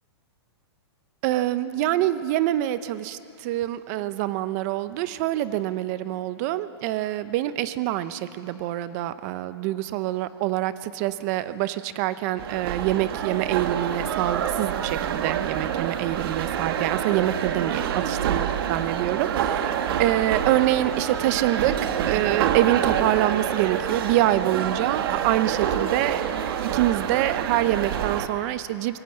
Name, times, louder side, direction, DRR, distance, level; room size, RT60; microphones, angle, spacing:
voice 1, 1.2-19.7 20.0-21.7 22.1-29.0, right 14 dB, 35° right, 14 dB, 0.7 m, -26 dB
sound 1, 12.4-28.3, right 9 dB, 60° right, 1.5 m, -27 dB
25.0 x 18.0 x 7.9 m, 2.8 s
hypercardioid pair, 155°, 14 cm